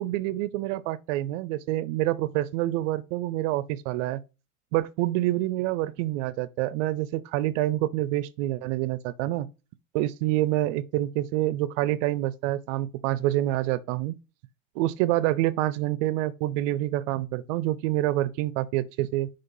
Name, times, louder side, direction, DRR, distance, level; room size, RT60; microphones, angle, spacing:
voice 1, 0.0-4.2 4.7-9.5 9.9-14.1 14.8-19.3, right 15 dB, 65° right, 0.5 m, -27 dB
5.7 x 3.4 x 5.3 m
hypercardioid pair, 95°, 41 cm